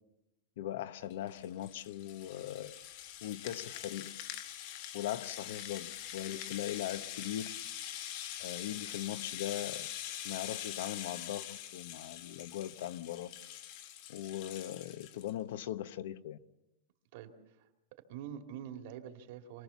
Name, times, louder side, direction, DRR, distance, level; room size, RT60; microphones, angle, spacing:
voice 1, 0.6-2.7 3.2-4.1 4.9-7.5 8.4-9.9 10.2-13.3 14.1-16.4, left 12 dB, 70° left, 1.0 m, -40 dB
Rattle (instrument), 1.1-15.3, left 11 dB, 45° left, 1.6 m, -44 dB
voice 2, 17.1-17.7 18.1-19.6, right 9 dB, 55° right, 2.6 m, -45 dB
27.0 x 20.0 x 7.1 m
supercardioid pair, 170°, 0 cm